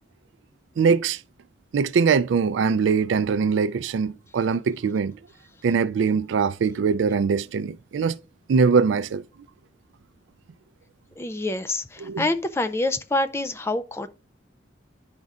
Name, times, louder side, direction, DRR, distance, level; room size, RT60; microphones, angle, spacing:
voice 1, 0.8-1.2 1.7-5.1 5.6-8.1 8.5-9.2 12.0-12.2, right 5 dB, 90° right, 0.3 m, -22 dB
voice 2, 11.2-14.1, left 2 dB, 15° left, 0.3 m, -26 dB
10.5 x 5.3 x 2.4 m
head